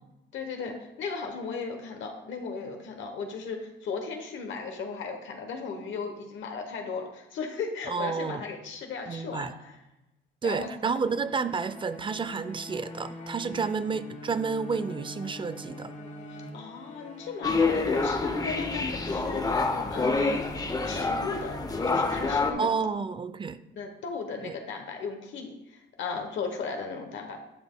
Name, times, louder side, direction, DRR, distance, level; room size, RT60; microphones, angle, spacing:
voice 1, 0.3-9.8 10.4-10.7 13.5-13.6 16.5-20.4 20.8-21.6 21.9-22.7 23.8-27.4, left 5 dB, 75° left, 4 dB, 0.9 m, -36 dB
voice 2, 7.9-8.4 9.1-9.5 10.4-15.9 22.6-23.6 24.4-24.5, right 5 dB, 25° right, 13 dB, 0.4 m, -30 dB
sound 1, 11.0-22.5, left 1 dB, 40° left, 1.0 m, -43 dB
sound 2, 17.4-22.5, left 3 dB, 20° left, 0.6 m, -27 dB
11.0 x 5.2 x 2.2 m, 0.95 s
cardioid pair, 90°, 20 cm